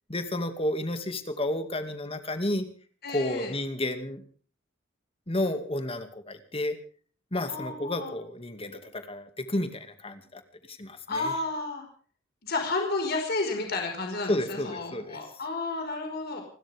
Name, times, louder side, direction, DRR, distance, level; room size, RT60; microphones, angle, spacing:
voice 1, 0.1-2.7 3.1-4.2 5.3-6.8 7.3-10.4 10.7-11.3 14.3-15.2, left 1 dB, 30° left, 8 dB, 2.2 m, -31 dB
voice 2, 3.0-3.5 7.4-8.1 11.1-11.8 12.4-16.4, left 3 dB, 55° left, 3 dB, 5.1 m, -31 dB
30.0 x 13.0 x 3.6 m, 0.42 s
head